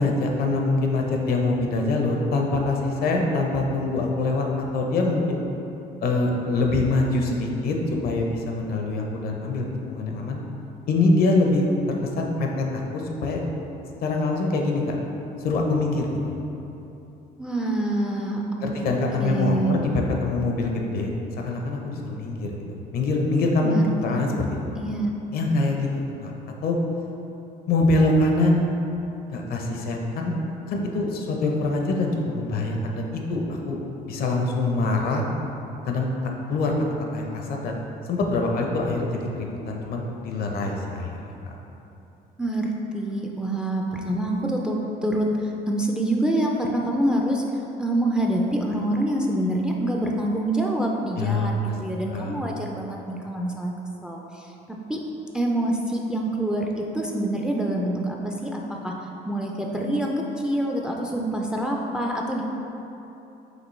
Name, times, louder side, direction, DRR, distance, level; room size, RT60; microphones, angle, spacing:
voice 1, 0.0-4.5 4.7-5.4 6.0-7.8 8.0-10.4 10.9-11.6 12.2-13.4 14.0-14.9 15.4-16.4 18.6-19.9 20.2-21.1 21.4-22.6 22.9-24.4 25.3-25.9 26.2-26.3 26.6-26.8 27.7-28.6 29.3-30.3 30.7-33.8 34.0-35.2 35.8-36.7 37.1-37.8 38.1-41.5 51.2-51.7 52.1-52.4, left 2 dB, 65° left, 1 dB, 0.6 m, -24 dB
voice 2, 17.4-18.8 19.2-19.8 23.6-24.2 24.7-25.1 42.4-45.3 45.7-47.4 47.8-53.7 54.0-54.5 54.9-55.0 55.3-58.9 59.3-62.4, right 1 dB, 5° right, -1 dB, 0.3 m, -26 dB
5.1 x 3.0 x 3.1 m, 3.0 s
cardioid pair, 110°, 17 cm